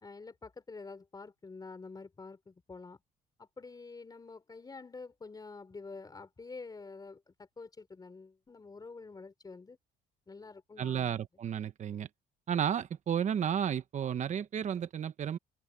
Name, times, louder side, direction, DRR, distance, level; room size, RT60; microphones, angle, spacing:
voice 1, 0.0-3.0 3.4-9.8 10.3-11.2, left 4 dB, 25° left, 4.5 m, -48 dB
voice 2, 10.8-12.1 12.5-15.4, right 8 dB, 45° right, 1.2 m, -32 dB
open air
cardioid pair, 110°, 17 cm